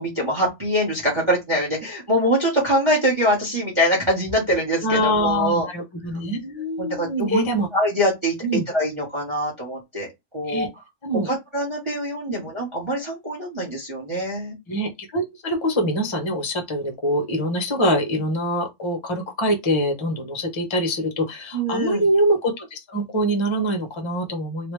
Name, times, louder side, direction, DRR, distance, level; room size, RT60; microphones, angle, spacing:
voice 1, 0.0-5.7 6.8-7.4 7.7-8.4 8.7-10.1 10.3-10.7 11.3-14.6 21.5-22.0, equal, 20° right, 1.1 m, -23 dB
voice 2, 4.8-7.7 8.4-8.7 10.5-10.7 11.0-11.3 14.7-24.7, equal, 25° left, 0.7 m, -24 dB
3.2 x 2.8 x 3.1 m
omnidirectional pair, 1.6 m